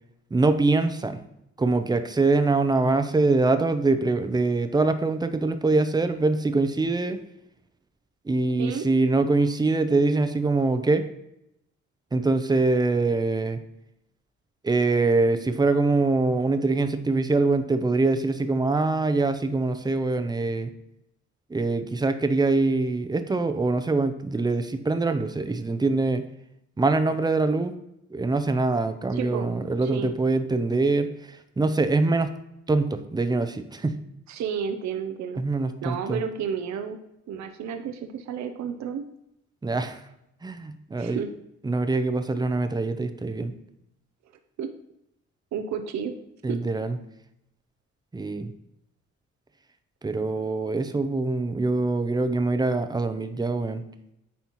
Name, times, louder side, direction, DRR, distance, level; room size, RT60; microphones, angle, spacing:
voice 1, 0.3-1.2 1.6-7.2 8.3-11.0 12.1-13.6 14.6-20.7 21.5-26.3 26.8-27.7 28.1-32.3 32.7-34.0 35.4-36.2 39.6-40.0 40.4-41.2 41.6-43.5 46.4-47.0 48.1-48.5 50.0-53.8, right 3 dB, 15° right, 9 dB, 0.6 m, -24 dB
voice 2, 29.1-29.5 29.8-30.1 34.3-35.4 35.8-37.0 37.3-39.0 41.0-41.3 44.6-44.7 45.5-46.2 46.5-46.6, right 7 dB, 65° right, 6 dB, 0.6 m, -31 dB
9.2 x 4.2 x 3.0 m, 0.81 s
cardioid pair, 90°, 30 cm